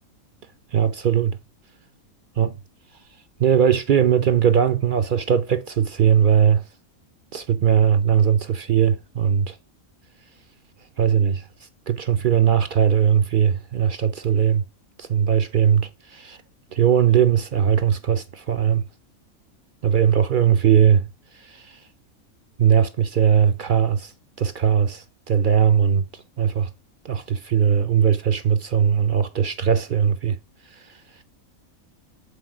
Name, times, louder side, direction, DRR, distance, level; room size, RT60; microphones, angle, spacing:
voice 1, 0.7-1.4 2.4-2.6 3.4-6.6 7.3-9.6 11.0-11.4 11.9-14.6 15.0-16.4 16.7-18.8 19.8-21.0 21.4-21.8 22.6-24.1 24.4-26.7 27.0-30.4, right 8 dB, 65° right, 0.5 m, -19 dB
8.2 x 4.1 x 6.1 m
omnidirectional pair, 1.5 m